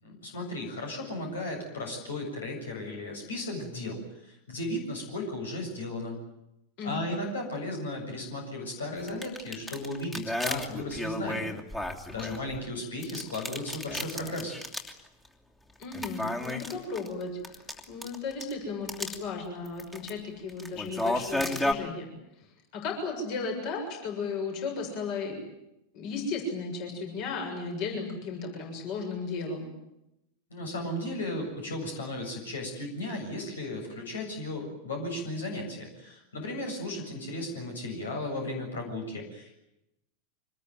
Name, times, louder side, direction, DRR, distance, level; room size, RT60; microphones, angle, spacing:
voice 1, 0.0-6.2 6.8-11.5 12.1-14.5 30.5-39.5, left 1 dB, 70° left, 2 dB, 7.5 m, -35 dB
voice 2, 6.8-7.1 15.8-17.6 17.9-22.1 22.7-25.4 25.9-29.7, left 4 dB, 45° left, 2 dB, 7.1 m, -35 dB
sound 1, 9.0-12.6 13.0-15.0 15.2-15.3 15.8-18.5 18.9-19.2 19.6-20.1 20.5-21.7, left 1 dB, 10° left, 3.0 m, -33 dB
25.5 x 20.5 x 9.4 m, 0.87 s
figure-of-eight pair, 90°, 0 cm